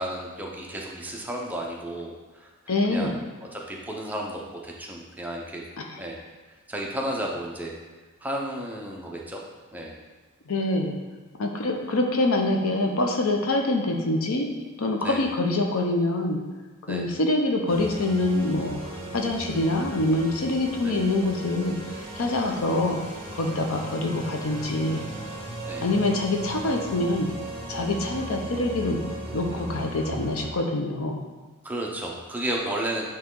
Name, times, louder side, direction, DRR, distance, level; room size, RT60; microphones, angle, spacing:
voice 1, 0.0-2.5 2.9-3.2 3.5-5.6 6.0-6.2 6.7-7.8 8.2-9.4 9.7-10.0 15.0-15.2 16.9-17.1 20.8-21.0 25.6-25.9 31.6-33.0, right 1 dB, 10° right, -1 dB, 0.6 m, -32 dB
voice 2, 2.7-3.1 5.8-6.0 10.5-11.0 11.4-14.5 14.8-16.4 16.9-23.0 23.4-25.0 25.8-27.3 27.7-29.0 29.3-31.2, left 2 dB, 90° left, 3 dB, 0.8 m, -25 dB
sound 1, 17.7-30.5, right 1 dB, 30° right, 1.6 m, -37 dB
8.6 x 3.1 x 3.7 m, 1.3 s
head